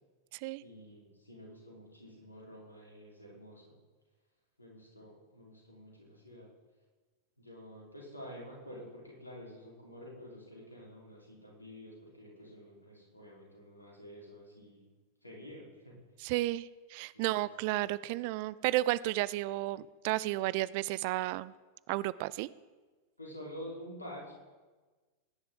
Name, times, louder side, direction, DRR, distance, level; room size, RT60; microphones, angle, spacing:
voice 1, 0.6-3.8 4.6-6.5 7.4-14.9 15.2-16.0 17.1-17.5 23.2-24.3, equal, 80° left, -3 dB, 3.8 m, -49 dB
voice 2, 16.2-21.5 21.9-22.5, right 17 dB, 45° right, 19 dB, 0.4 m, -32 dB
20.5 x 10.5 x 3.7 m, 1.3 s
figure-of-eight pair, 90°, 0 cm